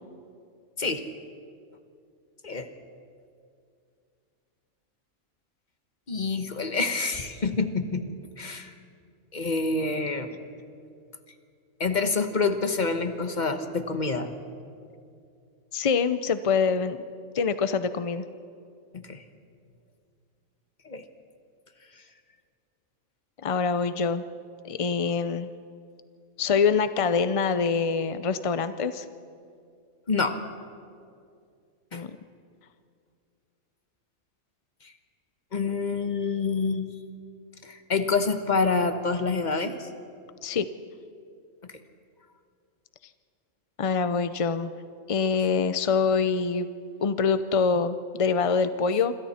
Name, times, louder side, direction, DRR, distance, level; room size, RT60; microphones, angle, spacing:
voice 1, 6.1-8.1 8.4-8.7 9.3-10.3 11.8-14.3 18.9-19.2 20.8-21.0 30.1-30.4 31.9-32.0 35.5-36.9 37.6-39.9, left 4 dB, 35° left, 8 dB, 1.3 m, -27 dB
voice 2, 15.7-17.0 17.3-18.3 23.4-24.2 24.6-25.5 26.4-29.0 31.9-32.1 40.4-40.7 43.8-44.7 45.1-46.7 47.0-49.1, left 5 dB, 55° left, 12 dB, 0.3 m, -25 dB
26.5 x 26.5 x 4.3 m, 2.4 s
omnidirectional pair, 1.4 m